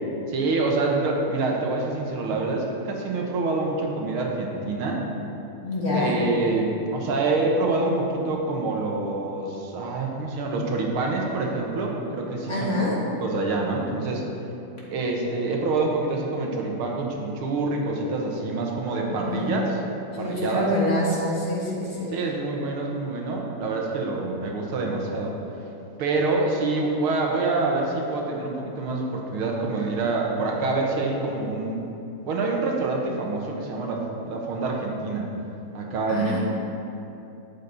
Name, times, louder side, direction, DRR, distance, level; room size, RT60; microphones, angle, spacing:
voice 1, 0.3-5.0 5.9-12.8 13.2-14.2 14.9-19.7 20.2-20.7 22.1-25.4 26.0-31.8 32.2-35.3 35.7-36.4, right 3 dB, 75° right, 0 dB, 2.0 m, -26 dB
voice 2, 5.6-6.2 12.5-13.0 14.8-14.9 19.1-19.5 20.1-22.1 36.1-36.4, left 1 dB, 35° left, -6 dB, 2.1 m, -26 dB
12.5 x 8.3 x 4.0 m, 2.9 s
omnidirectional pair, 2.4 m